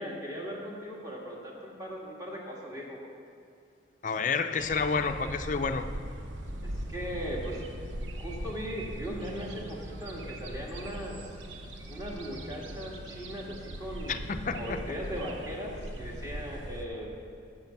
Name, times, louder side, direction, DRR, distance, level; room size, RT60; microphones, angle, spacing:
voice 1, 0.0-3.0 6.6-7.6 8.1-11.2 11.9-14.2 14.5-17.2, equal, 20° right, -3 dB, 1.6 m, -38 dB
voice 2, 4.0-5.9 14.1-14.8, left 5 dB, 40° left, 8 dB, 0.5 m, -29 dB
sound 1, 4.6-16.9, right 1 dB, 80° right, 0.8 m, -40 dB
10.5 x 6.1 x 6.8 m, 2.4 s
head